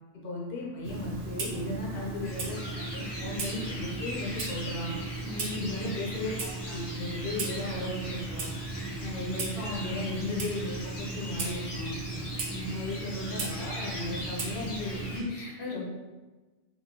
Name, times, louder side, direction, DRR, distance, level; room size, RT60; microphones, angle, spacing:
voice 1, 0.1-5.0 5.6-8.5 9.0-12.0 12.7-15.0, left 2 dB, 60° left, -4 dB, 0.9 m, -36 dB
Clock, 0.8-15.2, right 3 dB, 75° right, 0.9 m, -36 dB
sound 1, 2.2-15.2, left 1 dB, 40° left, 0.4 m, -42 dB
voice 2, 5.2-5.8 12.5-12.7 15.1-15.8, left 2 dB, 85° left, -5 dB, 1.1 m, -36 dB
2.9 x 2.6 x 2.7 m, 1.2 s
omnidirectional pair, 1.1 m